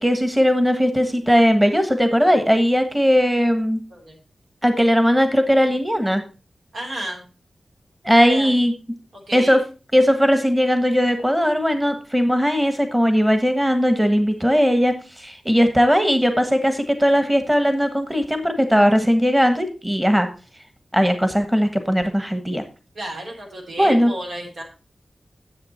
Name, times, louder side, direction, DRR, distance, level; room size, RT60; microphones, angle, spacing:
voice 1, 0.0-3.8 4.6-6.2 8.0-8.7 9.3-9.6 9.9-20.3 20.9-22.6 23.8-24.1, equal, 10° right, 8 dB, 1.4 m, -18 dB
voice 2, 6.7-7.2 8.3-8.5 9.1-9.6 22.9-24.6, right 1 dB, 80° right, 0 dB, 3.2 m, -32 dB
10.5 x 7.8 x 4.4 m, 0.34 s
wide cardioid pair, 85°, 0 cm